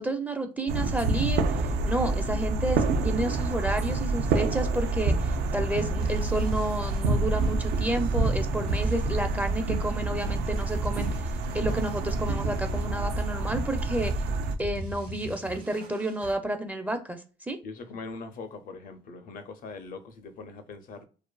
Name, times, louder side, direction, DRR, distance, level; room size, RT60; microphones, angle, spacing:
voice 1, 0.0-11.1 11.5-14.1 14.6-17.2 17.5-17.6, right 1 dB, 10° right, 0.4 m, -31 dB
sound 1, 0.7-14.6, right 3 dB, 80° right, 0.4 m, -27 dB
sound 2, 6.0-16.4, right 3 dB, 65° right, 0.9 m, -39 dB
voice 2, 17.6-21.0, left 4 dB, 55° left, 0.5 m, -41 dB
2.5 x 2.4 x 2.2 m
cardioid pair, 110°, 17 cm